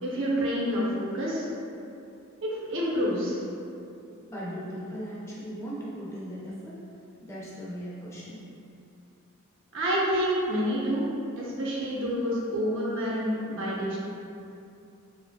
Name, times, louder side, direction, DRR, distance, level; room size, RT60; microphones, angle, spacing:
voice 1, 0.0-1.5 2.5-3.4 9.7-11.0 11.4-14.0, equal, 60° right, -6 dB, 0.6 m, -28 dB
voice 2, 4.2-6.8 7.2-8.4, equal, 15° left, -8 dB, 0.5 m, -38 dB
3.5 x 2.0 x 2.6 m, 2.6 s
head